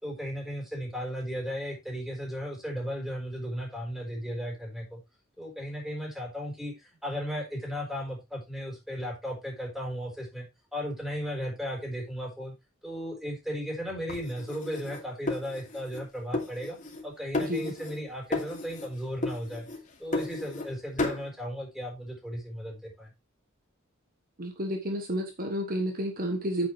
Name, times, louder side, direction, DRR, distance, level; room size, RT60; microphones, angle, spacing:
voice 1, 0.0-5.0 5.4-10.5 10.7-12.5 12.8-16.8 17.0-19.7 20.0-23.1, equal, ahead, 0 dB, 4.5 m, -35 dB
sound 1, 14.1-16.0 16.3-17.1 17.3-18.0 18.3-18.9 19.2-20.7 21.0-21.3, left 2 dB, 40° left, 2.7 m, -33 dB
voice 2, 24.4-26.7, equal, 45° right, 5 dB, 1.3 m, -31 dB
8.7 x 8.6 x 3.3 m, 0.23 s
head